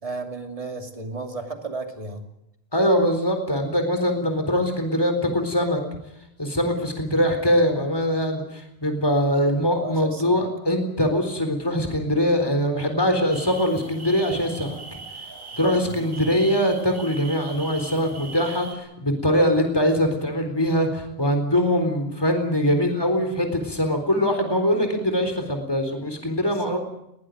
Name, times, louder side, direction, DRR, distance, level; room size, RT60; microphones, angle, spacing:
voice 1, 0.0-2.3 9.8-10.4 15.6-16.0 18.1-18.2 26.5-26.8, right 3 dB, 30° right, 4 dB, 2.8 m, -34 dB
voice 2, 2.7-5.8 6.4-15.0 15.6-26.8, equal, 20° left, 6 dB, 4.1 m, -22 dB
sound 1, 13.3-18.7, right 3 dB, 55° right, 3.4 m, -40 dB
21.0 x 18.5 x 9.2 m, 0.82 s
omnidirectional pair, 1.2 m